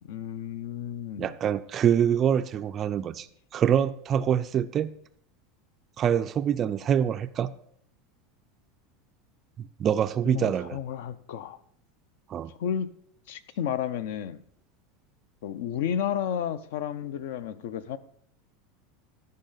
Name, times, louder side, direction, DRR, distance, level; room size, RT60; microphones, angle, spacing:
voice 1, 0.0-1.3 10.3-11.6 12.6-12.9 13.3-14.4 15.4-18.0, left 9 dB, 70° left, 0.6 m, -32 dB
voice 2, 1.2-3.3 3.5-4.9 6.0-7.5 9.6-10.8 12.3-12.5, right 9 dB, 25° right, 0.3 m, -25 dB
12.0 x 5.5 x 5.7 m
supercardioid pair, 170°, 0 cm